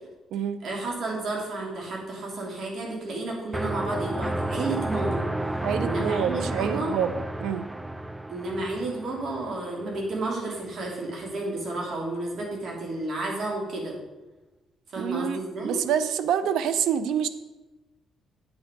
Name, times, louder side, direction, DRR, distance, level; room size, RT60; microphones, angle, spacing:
voice 1, 0.6-5.2 5.8-6.9 8.3-13.9 14.9-15.8, right 2 dB, 60° right, -1 dB, 2.9 m, -31 dB
sound 1, 3.5-10.3, right 1 dB, 10° right, 0.4 m, -31 dB
voice 2, 5.6-7.6 15.0-17.3, right 8 dB, 80° right, 13 dB, 0.6 m, -27 dB
9.0 x 6.2 x 5.2 m, 1.1 s
cardioid pair, 90°, 0 cm